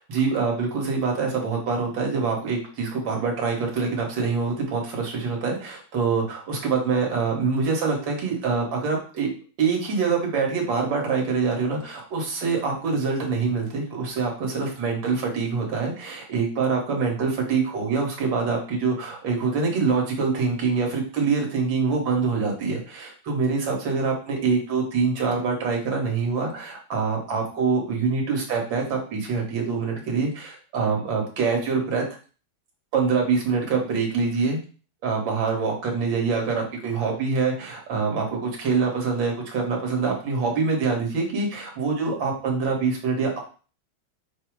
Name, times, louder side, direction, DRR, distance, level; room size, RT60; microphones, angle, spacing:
voice 1, 0.1-9.3 9.6-32.0 32.9-34.6 35.0-43.4, right 4 dB, 70° right, 0 dB, 1.9 m, -25 dB
5.4 x 2.0 x 4.5 m, 0.37 s
omnidirectional pair, 2.2 m